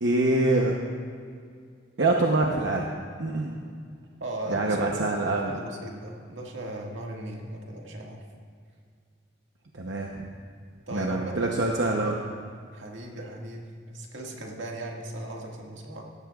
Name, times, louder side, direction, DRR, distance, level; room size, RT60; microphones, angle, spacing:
voice 1, 0.0-0.7 2.0-2.9 3.2-3.6 4.5-5.6 9.7-10.3 10.9-12.2, right 2 dB, 70° right, 0 dB, 0.9 m, -25 dB
voice 2, 4.2-4.9 5.3-8.2 10.9-11.8 12.7-16.0, right 1 dB, 90° right, 0 dB, 1.9 m, -37 dB
18.0 x 14.0 x 2.4 m, 2.2 s
head